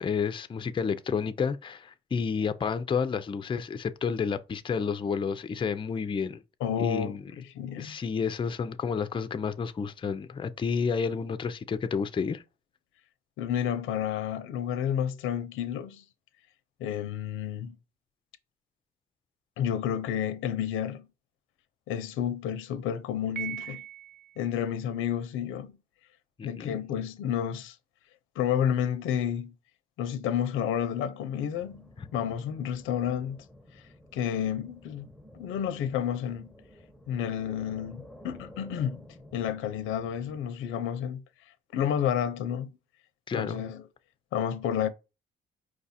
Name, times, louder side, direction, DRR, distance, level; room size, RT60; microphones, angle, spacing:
voice 1, 0.0-6.4 6.8-7.2 7.8-12.4 26.4-26.7 32.0-32.1 43.3-43.6, left 6 dB, 25° left, 0.4 m, -30 dB
voice 2, 6.6-8.0 13.4-16.0 16.8-17.8 19.6-21.1 21.9-23.8 24.4-25.8 26.4-27.8 28.4-29.5 30.0-33.4 34.1-35.1 35.3-36.5 37.1-39.0 39.3-41.2 41.7-42.7 43.3-43.8 44.3-44.9, left 9 dB, 90° left, 0.6 m, -30 dB
Piano, 23.4-24.5, right 12 dB, 50° right, 0.4 m, -39 dB
sound 1, 31.5-40.4, left 1 dB, 5° right, 0.8 m, -52 dB
4.8 x 2.4 x 4.1 m
cardioid pair, 90°, 20 cm